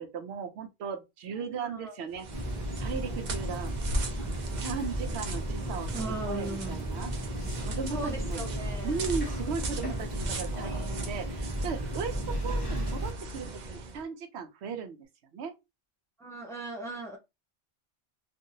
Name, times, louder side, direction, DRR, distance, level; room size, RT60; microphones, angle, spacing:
voice 1, 0.0-2.3 2.8-3.7 4.6-7.1 7.6-8.4 8.8-15.0 15.3-15.5, right 5 dB, 80° right, 0.9 m, -37 dB
voice 2, 1.4-2.0 4.2-4.3 5.9-6.8 7.9-9.0 16.2-17.2, right 2 dB, 5° left, 0.5 m, -38 dB
sound 1, 2.1-14.0, right 1 dB, 55° right, 0.6 m, -38 dB
sound 2, 2.3-13.1, right 1 dB, 25° left, 0.9 m, -34 dB
2.7 x 2.5 x 2.6 m
omnidirectional pair, 1.1 m